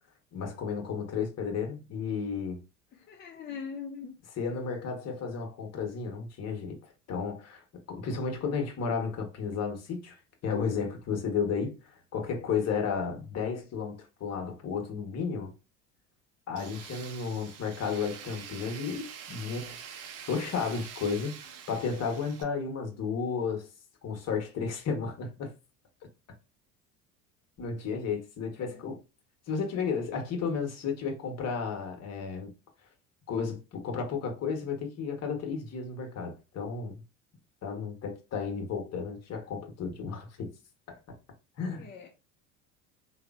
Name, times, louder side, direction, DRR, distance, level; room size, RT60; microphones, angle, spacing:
voice 1, 0.3-2.6 4.3-6.8 7.1-10.2 10.4-15.5 16.5-19.8 20.3-23.7 24.0-25.5 27.6-29.0 29.5-32.5 33.3-37.0 37.6-40.5 40.9-41.0 41.6-41.9, left 5 dB, 45° left, 1.0 m, -33 dB
voice 2, 3.1-4.1 28.6-28.8 41.8-42.1, left 6 dB, 25° left, 0.4 m, -41 dB
Tools, 16.6-22.4, right 7 dB, 45° right, 0.5 m, -45 dB
3.0 x 2.0 x 2.3 m
supercardioid pair, 90°, 38 cm